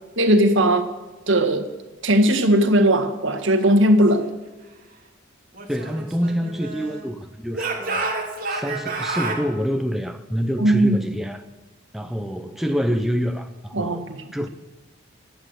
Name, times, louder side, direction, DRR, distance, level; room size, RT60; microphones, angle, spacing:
voice 1, 0.2-0.9 1.3-1.7 2.0-4.3 10.6-11.1 13.7-14.2, right 1 dB, 65° right, 1.7 m, -18 dB
Speech / Shout, 5.5-7.1 7.5-9.4, right 3 dB, 40° right, 2.6 m, -29 dB
voice 2, 5.7-8.1 8.5-11.5 11.9-14.1 14.3-14.5, equal, ahead, 0.6 m, -26 dB
20.0 x 8.4 x 8.0 m
head